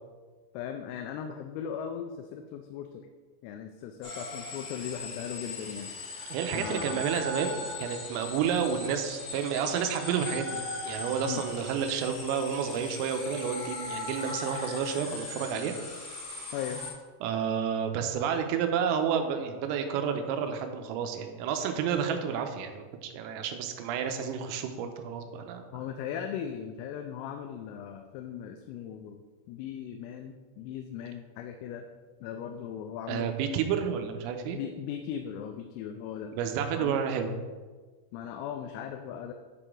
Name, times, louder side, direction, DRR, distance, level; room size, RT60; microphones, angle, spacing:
voice 1, 0.5-3.1 3.4-5.9 6.5-7.0 11.2-11.4 16.5-17.0 25.7-31.9 32.2-33.3 34.5-36.3 36.8-37.0 38.1-39.3, left 8 dB, 85° left, 5 dB, 3.2 m, -38 dB
sound 1, 4.0-16.9, left 2 dB, 40° left, 2.8 m, -39 dB
voice 2, 6.3-15.8 17.2-25.6 33.1-34.6 36.3-37.3, right 7 dB, 85° right, 6 dB, 3.3 m, -30 dB
9.6 x 5.0 x 3.6 m, 1.4 s
omnidirectional pair, 6.0 m